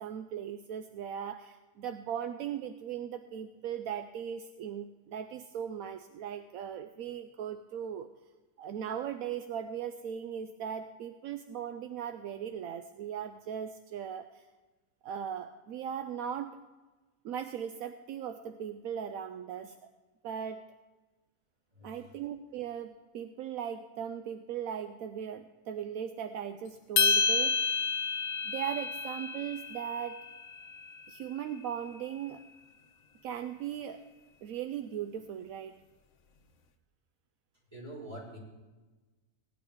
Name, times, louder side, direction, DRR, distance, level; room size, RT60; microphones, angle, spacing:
voice 1, 0.0-8.1 8.6-14.5 15.0-16.6 17.2-19.9 20.2-20.7 21.8-27.7 28.4-30.2 31.1-32.5 33.2-34.0 34.4-35.7, right 9 dB, 75° right, 8 dB, 1.0 m, -38 dB
voice 2, 21.7-22.1 37.7-38.4, right 1 dB, 20° right, -5 dB, 5.3 m, -45 dB
sound 1, 27.0-31.4, left 5 dB, 70° left, 1.2 m, -30 dB
16.5 x 11.0 x 3.6 m, 1.2 s
omnidirectional pair, 1.5 m